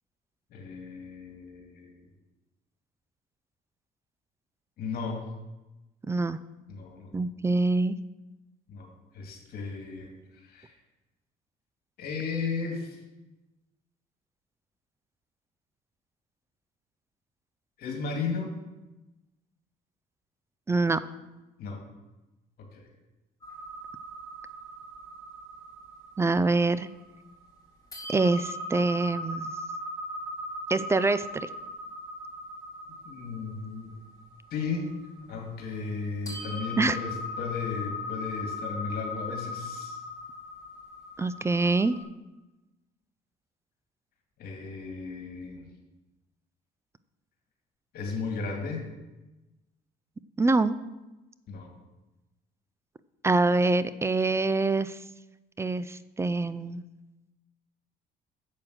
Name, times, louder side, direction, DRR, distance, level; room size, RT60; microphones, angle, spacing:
voice 1, 0.5-2.0 4.8-5.3 6.7-7.2 8.7-10.1 10.4-10.7 12.0-13.0 17.8-18.5 21.6-21.8 22.7-22.9 33.0-33.9 34.5-34.9 35.3-40.0 44.4-45.7 47.9-48.8 51.5-51.7, left 4 dB, 65° left, 1 dB, 2.1 m, -35 dB
voice 2, 6.1-6.4 7.1-8.0 20.7-21.0 26.2-26.9 28.1-29.5 30.7-31.5 36.8-37.0 41.2-42.0 50.4-50.8 53.2-55.0 55.6-56.8, right 3 dB, 15° right, 15 dB, 0.4 m, -25 dB
sound 1, 23.4-27.5 27.9-36.0 36.3-42.0, left 2 dB, 20° left, 4.2 m, -39 dB
8.7 x 7.6 x 6.3 m, 1.1 s
cardioid pair, 110°, 17 cm